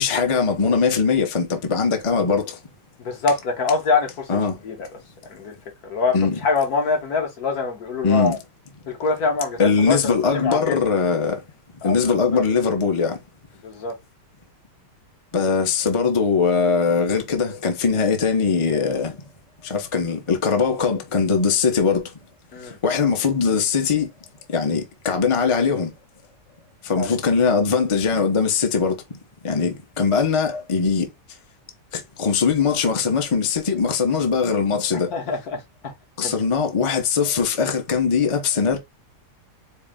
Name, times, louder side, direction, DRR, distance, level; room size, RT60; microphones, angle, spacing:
voice 1, 0.0-2.6 4.3-4.6 6.1-6.4 8.0-8.4 9.6-11.4 11.8-13.2 15.3-19.2 19.6-22.1 22.6-24.1 24.5-25.9 26.8-29.0 29.4-31.1 31.9-35.1 36.2-38.8, left 5 dB, 40° left, 0.4 m, -21 dB
voice 2, 3.0-4.9 5.2-5.5 5.8-8.4 8.9-10.9 11.8-12.4 13.6-14.0 22.5-22.8 27.0-27.1 35.1-35.9 36.2-36.3, left 4 dB, 65° left, 1.5 m, -25 dB
4.7 x 2.0 x 3.6 m
omnidirectional pair, 1.8 m